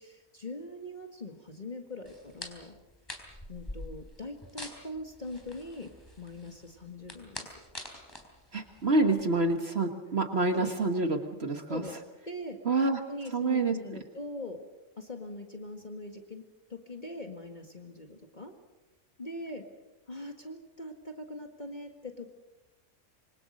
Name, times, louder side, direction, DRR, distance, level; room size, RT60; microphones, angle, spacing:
voice 1, 0.0-2.7 3.5-5.9 6.2-7.6 10.5-10.7 11.7-12.6 13.1-14.6 15.0-16.4 16.7-18.5 19.2-19.7 20.1-22.3, left 2 dB, 30° left, 4 dB, 2.0 m, -42 dB
sound 1, 2.1-9.4, left 1 dB, 15° left, 4.0 m, -46 dB
voice 2, 8.5-11.8 12.7-13.0 13.3-13.8, right 3 dB, 45° right, 6 dB, 1.8 m, -27 dB
26.0 x 24.0 x 6.6 m, 1.0 s
omnidirectional pair, 1.5 m